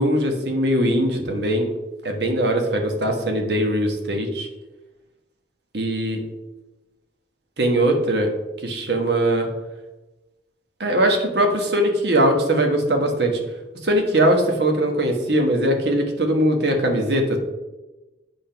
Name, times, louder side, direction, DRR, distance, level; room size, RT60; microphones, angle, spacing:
voice 1, 0.0-1.7 2.0-4.5 5.7-6.2 7.6-8.3 8.6-9.5 10.8-13.4 13.8-17.4, right 1 dB, 60° right, 3 dB, 1.2 m, -20 dB
8.2 x 3.5 x 5.8 m, 1.1 s
head